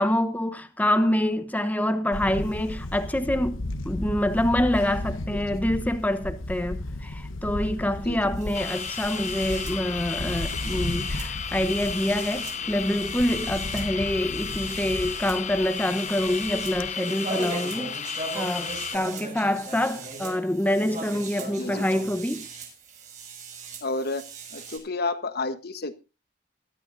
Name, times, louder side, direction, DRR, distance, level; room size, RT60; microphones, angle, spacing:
voice 1, 0.0-22.5, left 1 dB, 10° left, 1.0 m, -26 dB
Camera, 2.1-16.9, left 1 dB, 85° left, 1.0 m, -35 dB
voice 2, 5.3-5.6 8.0-8.3 21.6-21.9 23.8-24.2 24.5-26.0, left 3 dB, 55° left, 1.3 m, -31 dB
sound 1, 8.4-24.8, right 4 dB, 40° right, 6.1 m, -40 dB
sound 2, 8.5-19.0, left 8 dB, 40° left, 0.7 m, -33 dB
21.5 x 12.5 x 2.7 m
head